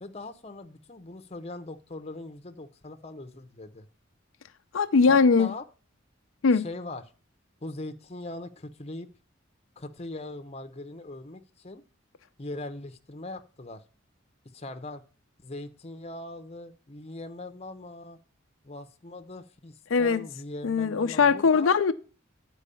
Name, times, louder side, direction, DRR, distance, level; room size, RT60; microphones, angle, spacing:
voice 1, 0.0-3.9 5.1-5.6 6.5-7.0 7.6-9.1 9.8-11.8 12.4-13.8 14.5-15.0 15.4-18.2 18.6-21.7, left 2 dB, 30° left, 0.8 m, -40 dB
voice 2, 4.7-5.5 6.4-6.6 19.9-20.2 20.6-21.9, left 5 dB, 85° left, 0.5 m, -21 dB
9.9 x 4.7 x 6.8 m
head